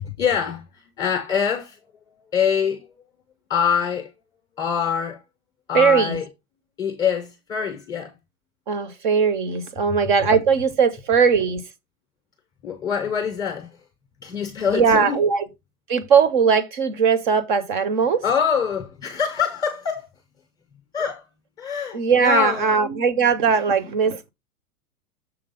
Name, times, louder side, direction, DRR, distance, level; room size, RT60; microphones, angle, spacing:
voice 1, 0.2-1.8 2.3-2.9 3.5-4.1 4.6-5.2 5.7-6.3 6.8-8.1 12.6-13.8 14.2-15.2 18.2-20.1 20.9-21.3 21.6-22.8, left 7 dB, 10° left, 0.6 m, -24 dB
voice 2, 5.7-6.2 8.7-11.6 14.7-15.4 15.9-18.2 21.9-24.3, right 6 dB, 35° right, 0.6 m, -19 dB
6.8 x 4.0 x 5.3 m
supercardioid pair, 170°, 44 cm